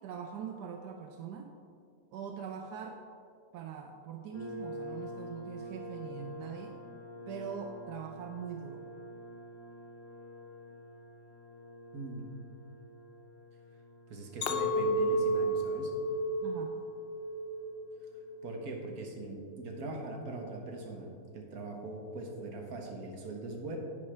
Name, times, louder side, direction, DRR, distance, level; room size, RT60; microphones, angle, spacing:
voice 1, 0.0-1.5 2.1-3.0 3.5-6.8 7.3-8.9 16.4-16.8, right 7 dB, 90° right, 4 dB, 1.2 m, -42 dB
sound 1, 4.3-18.8, equal, 70° left, 2.5 m, -48 dB
voice 2, 11.9-12.3 14.1-15.9 18.4-23.8, right 2 dB, 65° right, 1 dB, 1.7 m, -41 dB
Chink clink, 14.4-18.8 19.2-19.7, right 1 dB, 85° left, 0.5 m, -32 dB
10.5 x 9.1 x 3.4 m, 2.3 s
omnidirectional pair, 1.7 m